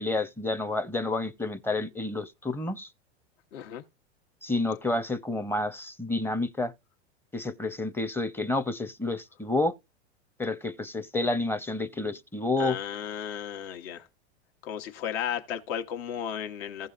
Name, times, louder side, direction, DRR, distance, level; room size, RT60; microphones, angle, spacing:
voice 1, 0.0-2.9 4.4-6.7 7.3-9.7 10.4-12.8, left 2 dB, 5° left, 0.7 m, -29 dB
voice 2, 3.5-3.8 12.6-14.1 14.6-16.9, left 9 dB, 60° left, 1.4 m, -34 dB
16.0 x 5.3 x 2.5 m
hypercardioid pair, 95°, 34 cm